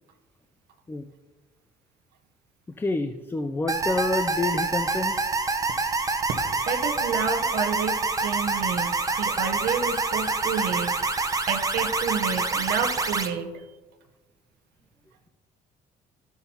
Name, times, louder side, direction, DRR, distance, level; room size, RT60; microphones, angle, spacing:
voice 1, 2.8-5.3, left 2 dB, 15° left, 8 dB, 0.4 m, -28 dB
sound 1, 3.7-13.3, right 3 dB, 20° right, 0.7 m, -26 dB
voice 2, 6.6-10.9 11.5-13.6, right 6 dB, 80° right, 6 dB, 0.9 m, -29 dB
13.5 x 5.8 x 2.8 m, 1.2 s
cardioid pair, 110°, 17 cm